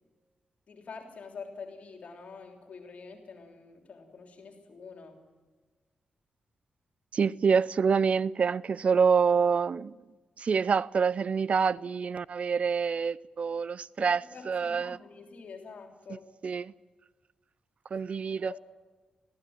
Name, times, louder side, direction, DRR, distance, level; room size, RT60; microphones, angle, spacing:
voice 1, 0.7-5.2 14.0-16.3 18.4-18.6, left 5 dB, 70° left, 3.4 m, -46 dB
voice 2, 7.1-9.9 10.4-14.2 14.5-15.0 16.4-16.7 17.9-18.6, right 6 dB, 60° right, 0.6 m, -26 dB
21.5 x 16.0 x 8.9 m
cardioid pair, 60°, 2 cm